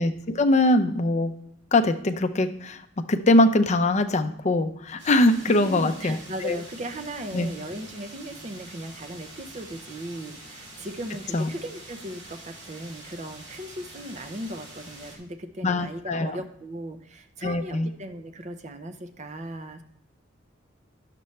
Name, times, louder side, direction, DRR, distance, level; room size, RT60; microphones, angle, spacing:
voice 1, 0.0-1.3 1.7-2.8 3.1-6.2 6.4-6.6 7.3-7.5 11.3-11.5 15.6-16.4 17.4-17.9, left 2 dB, 35° left, 9 dB, 0.5 m, -22 dB
sound 1, 5.0-15.2, right 1 dB, 65° right, 2.2 m, -45 dB
voice 2, 5.5-19.8, right 1 dB, 35° right, 8 dB, 0.6 m, -37 dB
10.0 x 6.8 x 3.2 m, 0.73 s
head